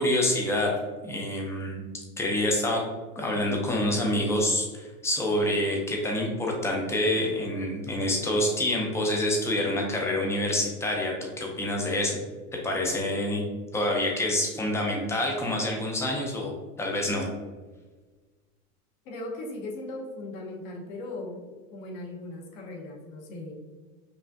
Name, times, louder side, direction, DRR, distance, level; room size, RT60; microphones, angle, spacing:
voice 1, 0.0-1.8 2.2-2.8 3.2-12.2 12.5-13.4 13.7-16.5 16.8-17.3, left 1 dB, 5° left, 0 dB, 0.4 m, -27 dB
voice 2, 19.0-23.6, left 2 dB, 65° left, 0 dB, 1.2 m, -38 dB
5.5 x 2.4 x 2.6 m, 1.3 s
supercardioid pair, 125°, 44 cm